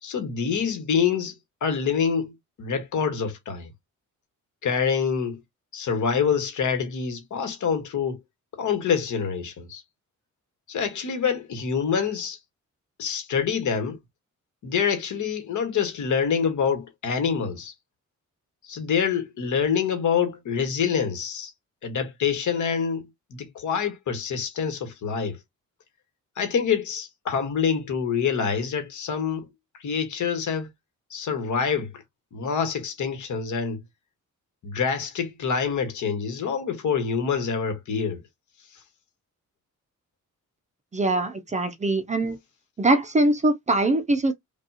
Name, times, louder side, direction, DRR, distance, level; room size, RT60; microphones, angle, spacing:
voice 1, 0.0-1.3 1.6-2.3 2.6-3.7 4.6-5.4 5.7-8.2 8.5-9.8 10.7-12.4 13.0-14.0 14.6-17.7 18.6-21.5 21.8-25.4 26.4-29.5 29.7-30.7 31.1-32.0 32.3-33.8 34.6-38.2, left 6 dB, 70° left, 1.4 m, -26 dB
voice 2, 40.9-42.4 42.8-44.3, right 2 dB, 25° right, 0.5 m, -22 dB
5.2 x 2.3 x 2.8 m
wide cardioid pair, 180°, 31 cm